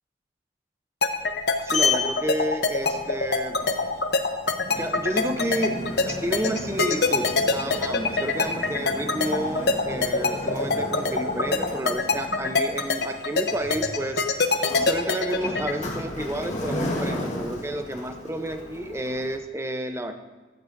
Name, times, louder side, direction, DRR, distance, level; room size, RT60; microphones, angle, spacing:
sound 1, 1.0-15.7, left 3 dB, 60° left, 0.8 m, -23 dB
Sliding door, 1.1-19.4, left 2 dB, 40° left, 1.6 m, -34 dB
voice 1, 1.6-3.6 4.8-5.8 6.0-14.2 14.8-20.1, right 1 dB, 15° right, 7 dB, 0.6 m, -30 dB
14.0 x 13.5 x 2.6 m, 1.3 s
head